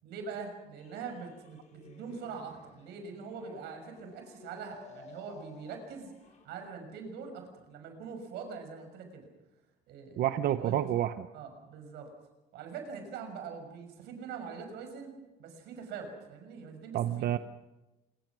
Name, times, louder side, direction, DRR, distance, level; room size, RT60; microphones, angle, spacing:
voice 1, 0.0-6.1 6.4-9.3 9.9-11.0 11.3-12.1 12.5-15.1 15.4-17.3, right 5 dB, 85° right, 5 dB, 6.4 m, -43 dB
sound 1, 0.8-6.5, left 4 dB, 45° left, 5.3 m, -55 dB
voice 2, 10.2-11.3 16.9-17.4, right 12 dB, 65° right, 10 dB, 0.9 m, -29 dB
26.5 x 23.0 x 6.2 m, 1.0 s
cardioid pair, 110°, 17 cm